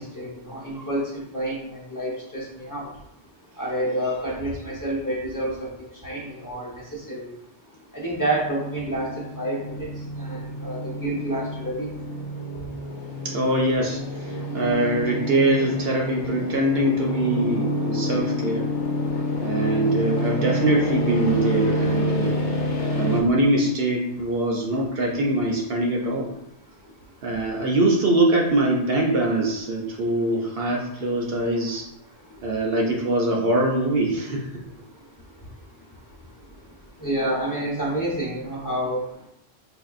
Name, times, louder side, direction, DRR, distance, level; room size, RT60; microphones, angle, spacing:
voice 1, 0.0-2.9 3.6-5.7 6.0-6.7 7.1-7.3 7.9-9.1 9.4-9.8 10.2-11.9 37.0-39.0, right 1 dB, 20° left, -6 dB, 0.9 m, -28 dB
sound 1, 8.3-23.2, left 1 dB, 85° left, 1.0 m, -28 dB
voice 2, 13.2-18.7 19.4-22.3 23.0-26.3 27.2-31.8 32.4-34.6, right 1 dB, 65° right, -1 dB, 0.8 m, -23 dB
4.8 x 2.6 x 2.4 m, 0.78 s
omnidirectional pair, 1.2 m